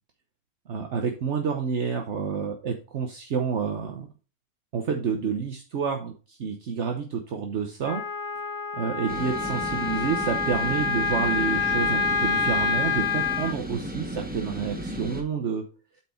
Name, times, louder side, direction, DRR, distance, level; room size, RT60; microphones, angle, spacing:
voice 1, 0.7-4.1 4.7-8.0 8.7-15.6, right 6 dB, 65° right, 3 dB, 1.2 m, -29 dB
Wind instrument woodwind instrument, 7.8-13.5, left 4 dB, 50° left, 0.3 m, -27 dB
sound 1, 9.1-15.2, right 1 dB, 10° right, 1.0 m, -35 dB
8.6 x 4.6 x 4.3 m, 0.33 s
omnidirectional pair, 1.3 m